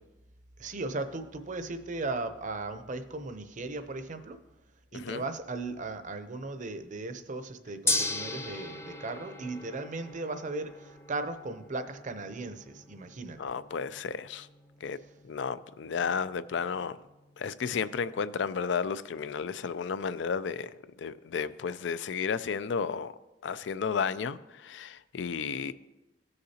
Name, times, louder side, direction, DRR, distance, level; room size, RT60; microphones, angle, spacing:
voice 1, 0.6-4.4 4.9-13.4, right 3 dB, 45° right, 0.7 m, -37 dB
voice 2, 4.9-5.2 13.4-14.5 14.8-15.0 15.2-17.0 17.4-23.1 23.4-25.7, left 6 dB, 70° left, 0.4 m, -33 dB
Gong, 7.9-18.1, left 2 dB, 15° left, 0.6 m, -39 dB
16.5 x 6.5 x 2.8 m
head